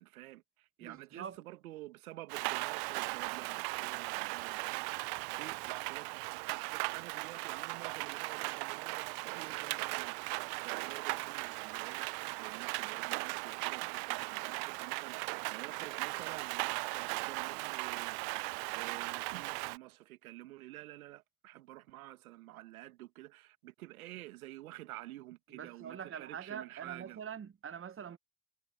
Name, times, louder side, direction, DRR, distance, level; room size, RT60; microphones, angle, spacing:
voice 1, 0.0-10.2 10.6-12.1 12.4-27.2, right 16 dB, 80° right, 1.7 m, -50 dB
voice 2, 0.8-1.4 25.5-28.2, right 8 dB, 30° right, 1.3 m, -44 dB
Rain, 2.3-19.8, right 31 dB, 65° right, 0.6 m, -38 dB
hypercardioid pair, 55°, 42 cm